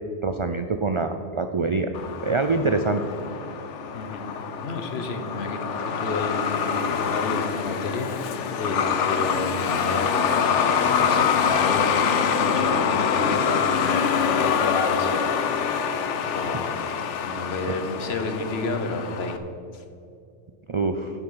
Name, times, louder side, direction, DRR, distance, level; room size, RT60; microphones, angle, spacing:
voice 1, 0.2-1.9 2.2-3.0 20.7-21.1, right 3 dB, 55° right, 7 dB, 0.3 m, -24 dB
Truck, 1.9-19.4, left 7 dB, 80° left, 1.0 m, -25 dB
voice 2, 3.9-4.3 4.6-15.3 15.6-15.8 16.2-19.4 19.7-19.8, left 3 dB, 60° left, 7 dB, 1.2 m, -31 dB
10.5 x 8.0 x 5.7 m, 2.6 s
omnidirectional pair, 1.2 m